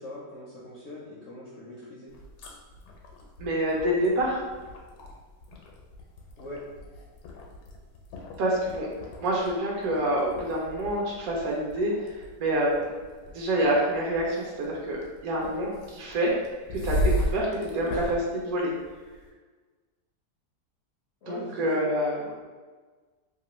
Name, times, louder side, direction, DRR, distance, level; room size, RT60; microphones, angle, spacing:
voice 1, 0.0-2.2 6.4-6.7 17.7-18.0 21.2-21.7, left 1 dB, 70° left, -6 dB, 0.7 m, -41 dB
sound 1, 2.1-19.3, equal, 90° left, 1.2 m, -37 dB
voice 2, 3.4-4.4 8.4-8.9 9.2-12.8 13.3-16.3 16.7-17.5 17.7-18.7 21.3-22.2, right 1 dB, 70° right, -3 dB, 0.9 m, -27 dB
2.9 x 2.4 x 2.9 m, 1.4 s
omnidirectional pair, 1.8 m